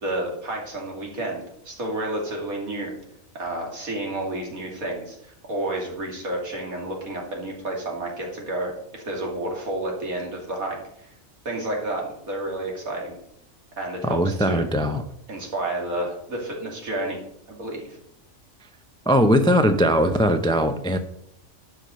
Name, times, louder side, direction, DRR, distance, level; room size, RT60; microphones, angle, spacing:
voice 1, 0.0-2.9 3.3-11.1 11.4-13.2 13.8-14.8 15.3-18.0, right 1 dB, 80° right, -1 dB, 3.0 m, -30 dB
voice 2, 14.0-15.0 19.1-21.0, equal, 5° left, 8 dB, 0.3 m, -20 dB
11.5 x 5.6 x 6.3 m, 0.73 s
omnidirectional pair, 1.5 m